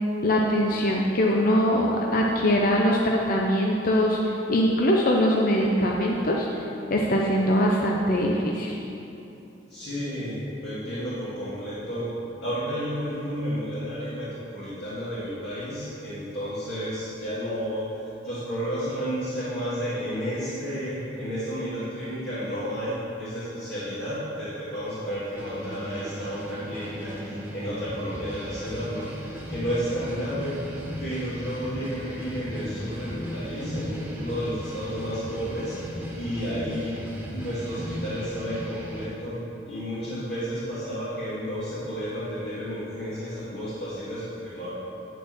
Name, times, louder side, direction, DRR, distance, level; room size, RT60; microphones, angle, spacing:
voice 1, 0.2-6.6 6.9-8.8, equal, 50° left, -1 dB, 0.7 m, -22 dB
voice 2, 9.7-10.4 10.6-12.1 12.4-17.8 18.2-29.1 29.5-30.6 31.0-37.1 37.3-44.7, equal, 65° left, -12 dB, 2.2 m, -32 dB
sound 1, 25.3-39.0, equal, 10° right, 1.4 m, -37 dB
10.5 x 4.4 x 7.1 m, 2.8 s
head